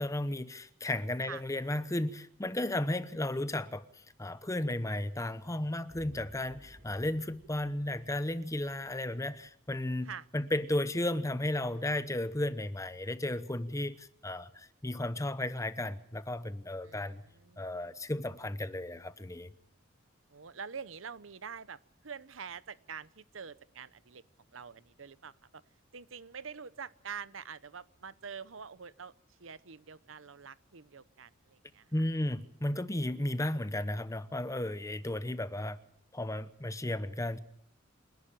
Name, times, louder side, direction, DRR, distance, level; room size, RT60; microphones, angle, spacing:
voice 1, 0.0-17.2 17.6-19.5 31.9-35.8 36.1-37.4, left 1 dB, 15° left, 0.9 m, -34 dB
sound 1, 5.9-9.9, equal, 60° right, 4.7 m, -57 dB
voice 2, 16.8-17.6 20.3-24.2 24.5-25.3 25.9-29.1 29.4-31.9, right 6 dB, 80° right, 0.9 m, -46 dB
28.0 x 11.5 x 8.9 m
head